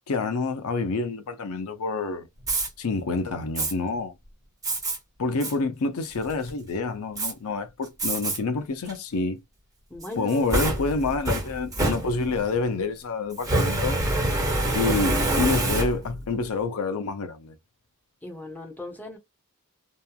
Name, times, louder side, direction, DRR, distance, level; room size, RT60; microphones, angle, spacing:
voice 1, 0.1-2.3 2.8-4.1 5.2-9.4 10.2-14.0 14.7-17.5, left 3 dB, 75° left, 0.5 m, -28 dB
Fire, 2.4-2.7 3.6-3.7 4.6-5.0 5.4-5.5 6.0-6.5 7.2-7.3 8.0-8.4 8.9-9.0 10.0-12.5 13.4-16.2, right 1 dB, 15° right, 1.1 m, -26 dB
voice 2, 9.9-10.6 18.2-19.2, left 2 dB, 10° left, 1.0 m, -38 dB
2.9 x 2.2 x 2.3 m
head